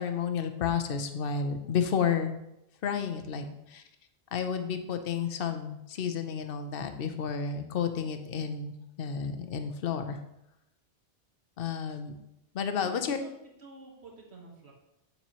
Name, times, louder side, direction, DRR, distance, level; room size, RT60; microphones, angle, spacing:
voice 1, 0.0-2.4 2.8-3.4 3.7-3.8 4.3-10.2 11.6-12.1 12.5-13.2, left 7 dB, 55° left, 7 dB, 0.9 m, -31 dB
voice 2, 3.2-3.6 12.8-13.3 13.6-14.7, right 1 dB, 65° right, 0 dB, 1.8 m, -50 dB
8.1 x 7.0 x 3.0 m, 0.84 s
omnidirectional pair, 1.2 m